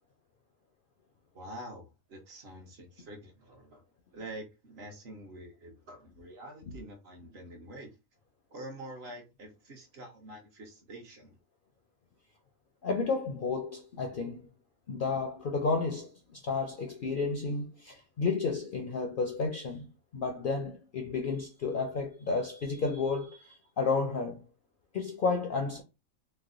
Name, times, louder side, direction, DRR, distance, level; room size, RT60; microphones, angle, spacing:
voice 1, 1.3-3.8 4.1-7.9 8.5-11.3, right 1 dB, 55° right, 1.0 m, -46 dB
voice 2, 12.8-14.5 14.9-19.9 20.1-24.4 24.9-25.8, left 4 dB, 60° left, 0.5 m, -32 dB
3.2 x 2.0 x 3.7 m
omnidirectional pair, 1.4 m